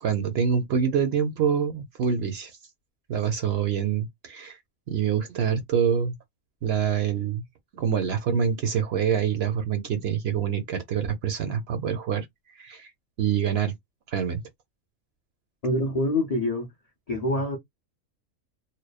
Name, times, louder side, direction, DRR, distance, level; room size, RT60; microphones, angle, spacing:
voice 1, 0.0-2.6 3.1-4.6 4.9-6.2 6.6-7.4 7.8-12.3 12.6-12.9 13.2-13.7 14.1-14.4, right 7 dB, 60° right, 0.7 m, -26 dB
voice 2, 15.6-16.7 17.1-17.6, left 1 dB, 65° left, 0.3 m, -25 dB
2.9 x 2.0 x 2.2 m
omnidirectional pair, 1.5 m